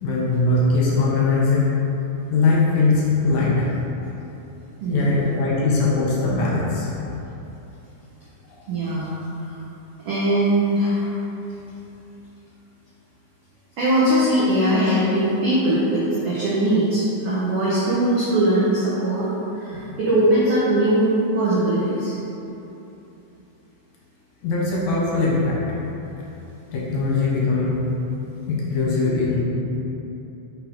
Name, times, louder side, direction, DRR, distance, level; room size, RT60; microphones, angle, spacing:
voice 1, 0.0-1.7 2.3-3.7 4.9-6.9 19.7-19.8 24.4-25.6 26.7-27.8 28.5-29.4, left 3 dB, 70° left, -5 dB, 2.2 m, -20 dB
voice 2, 4.8-5.3 8.7-9.1 9.4-9.5 10.0-11.1 13.8-19.3 19.6-22.1, right 1 dB, 90° right, -8 dB, 1.3 m, -20 dB
5.4 x 4.1 x 4.5 m, 3.0 s
omnidirectional pair, 3.9 m